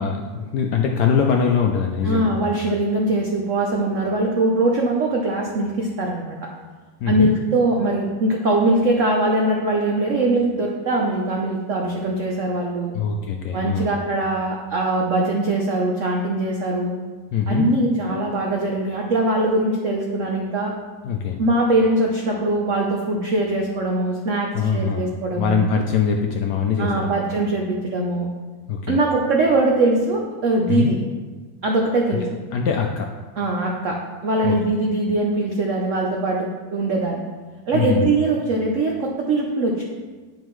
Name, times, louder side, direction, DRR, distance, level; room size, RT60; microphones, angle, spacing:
voice 1, 0.0-2.6 7.0-7.3 12.9-13.9 17.3-17.6 21.0-21.4 24.5-25.1 25.4-27.2 28.7-29.0 30.7-30.9 32.5-33.1 34.4-34.5 37.7-38.1, left 6 dB, 75° left, 2 dB, 0.9 m, -22 dB
voice 2, 2.0-6.5 7.1-12.9 13.5-16.9 17.5-20.7 21.4-25.6 26.8-28.3 28.9-31.0 31.6-32.2 33.4-37.2 37.7-39.8, right 2 dB, 75° right, 0 dB, 0.7 m, -22 dB
9.2 x 5.4 x 3.1 m, 1.4 s
omnidirectional pair, 2.2 m